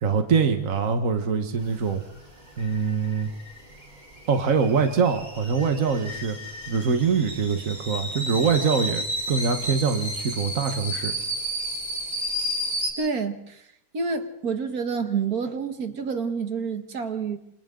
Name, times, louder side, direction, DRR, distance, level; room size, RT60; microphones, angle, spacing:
voice 1, 0.0-2.0 2.6-3.3 4.3-6.4 6.7-11.1, right 5 dB, 60° right, 6 dB, 1.8 m, -24 dB
sound 1, 1.6-12.9, equal, 30° right, 5.4 m, -33 dB
voice 2, 13.0-13.7 13.9-17.4, right 5 dB, 75° right, 7 dB, 2.1 m, -28 dB
27.5 x 27.5 x 3.9 m, 0.74 s
omnidirectional pair, 1.6 m